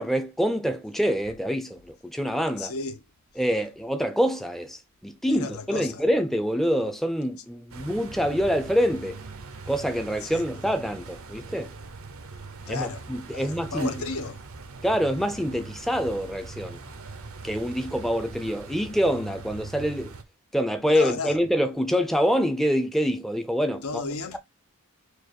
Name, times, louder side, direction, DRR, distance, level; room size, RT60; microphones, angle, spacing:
voice 1, 0.0-2.7 3.4-9.2 9.7-11.7 12.7-13.9 14.8-16.8 17.4-20.2 20.5-24.0, equal, ahead, 0.5 m, -26 dB
voice 2, 2.6-3.0 5.3-6.0 10.2-10.4 12.7-14.4 20.9-21.4 23.8-24.4, left 3 dB, 75° left, 0.8 m, -34 dB
sound 1, 7.7-20.2, right 4 dB, 70° right, 0.7 m, -41 dB
4.7 x 2.4 x 4.5 m
head